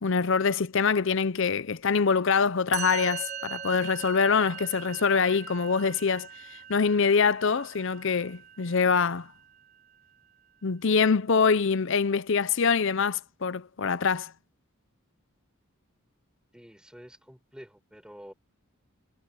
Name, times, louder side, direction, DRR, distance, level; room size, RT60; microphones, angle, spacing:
voice 1, 0.0-9.3 10.6-14.3, left 5 dB, 60° left, 0.6 m, -24 dB
Musical instrument, 2.7-10.0, right 8 dB, 30° right, 1.9 m, -41 dB
voice 2, 16.5-18.3, equal, 5° right, 5.0 m, -48 dB
head